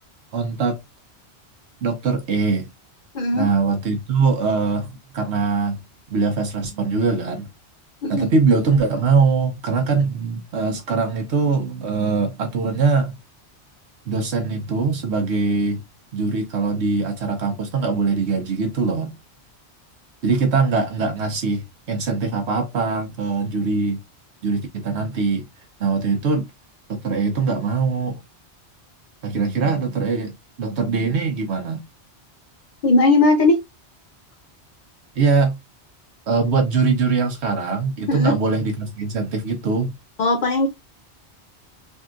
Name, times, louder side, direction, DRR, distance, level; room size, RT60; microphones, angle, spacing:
voice 1, 0.3-0.8 1.8-2.7 3.3-5.8 6.1-7.5 8.1-13.2 14.1-15.8 16.1-19.1 20.2-24.0 24.4-25.5 25.8-26.5 26.9-28.2 29.2-31.8 35.2-35.6 36.3-39.9, right 4 dB, 75° right, 1.0 m, -22 dB
voice 2, 3.1-3.5 8.0-8.3 32.8-33.6 38.1-38.3 40.2-40.7, left 2 dB, 50° left, 0.6 m, -18 dB
3.6 x 2.6 x 2.3 m
omnidirectional pair, 1.2 m